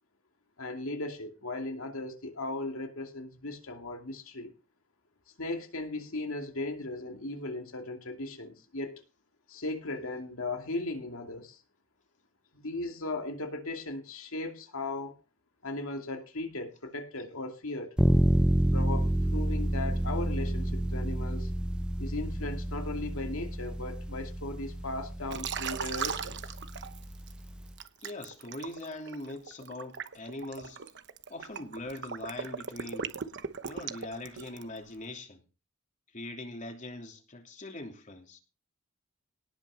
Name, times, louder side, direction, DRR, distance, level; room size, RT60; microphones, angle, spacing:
voice 1, 0.6-4.5 5.4-9.0 9.5-11.6 12.5-15.2 15.6-17.9 18.7-21.5 22.0-26.4, left 2 dB, 80° left, 2.5 m, -37 dB
sound 1, 18.0-27.7, right 1 dB, 5° right, 0.6 m, -29 dB
Liquid, 25.3-27.3 27.8-34.8, right 6 dB, 60° right, 1.0 m, -38 dB
voice 2, 28.0-30.8 31.3-33.1 33.6-35.4 36.1-38.4, left 2 dB, 40° left, 3.0 m, -41 dB
18.5 x 6.1 x 5.6 m
head